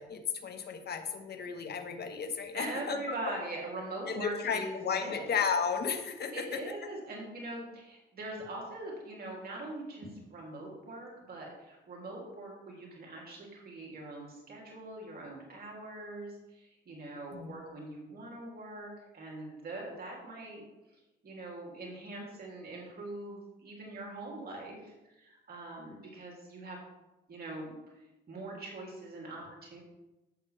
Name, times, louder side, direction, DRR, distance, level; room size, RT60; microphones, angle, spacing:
voice 1, 0.0-3.1 4.1-6.6 17.3-17.6, left 6 dB, 55° left, 6 dB, 1.5 m, -34 dB
voice 2, 2.5-5.2 6.3-20.6 20.9-26.8 27.3-27.8 28.3-29.8, right 2 dB, 50° right, -2 dB, 3.0 m, -42 dB
11.5 x 8.3 x 3.4 m, 1.0 s
cardioid pair, 90°, 20 cm